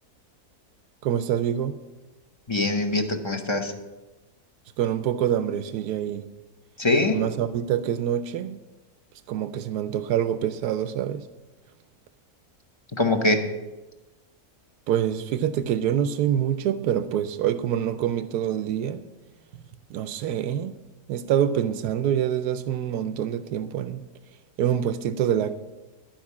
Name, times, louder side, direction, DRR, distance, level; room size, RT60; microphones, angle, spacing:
voice 1, 1.0-1.8 4.8-6.3 7.1-8.6 9.3-11.3 14.9-19.0 19.9-20.7 21.1-24.0 24.6-25.5, right 10 dB, 90° right, 11 dB, 1.1 m, -26 dB
voice 2, 2.5-3.7 6.8-7.2 13.0-13.4, left 2 dB, 20° left, 5 dB, 0.8 m, -23 dB
13.0 x 5.4 x 8.5 m, 1.1 s
omnidirectional pair, 1.6 m